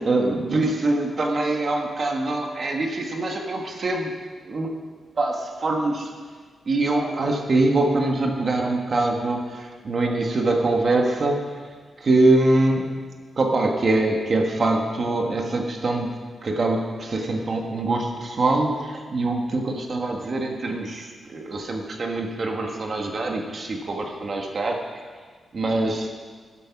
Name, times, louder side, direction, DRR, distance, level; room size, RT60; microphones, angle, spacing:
voice 1, 0.0-4.1 4.5-4.7 5.2-6.1 6.7-11.4 12.0-12.9 13.4-16.1 16.4-24.8 25.5-26.1, right 2 dB, 35° right, 2 dB, 1.3 m, -23 dB
12.5 x 11.5 x 5.9 m, 1.5 s
wide cardioid pair, 170°, 0 cm